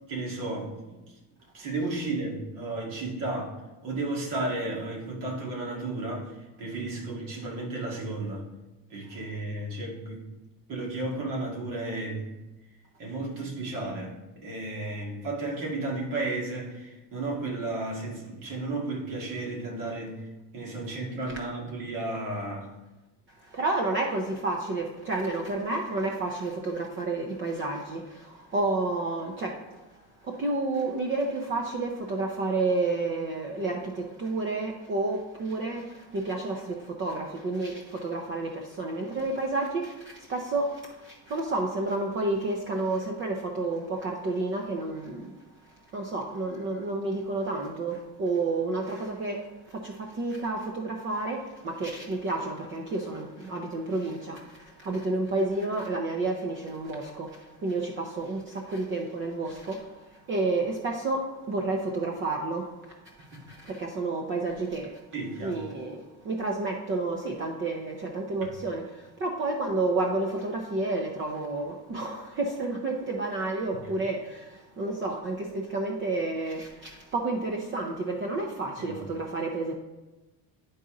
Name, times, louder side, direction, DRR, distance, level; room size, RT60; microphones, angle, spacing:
voice 1, 0.1-1.0 1.5-3.5 3.8-6.3 6.6-8.4 8.9-10.2 10.7-12.3 13.0-14.1 14.4-20.2 20.5-22.7 65.1-65.6 78.9-79.1, right 2 dB, 55° right, -2 dB, 2.2 m, -33 dB
voice 2, 23.4-29.8 30.2-45.3 45.6-62.9 63.2-65.0 65.4-79.7, right 2 dB, 30° right, 1 dB, 0.6 m, -30 dB
11.0 x 4.1 x 3.7 m, 1.1 s
cardioid pair, 175°, 40 cm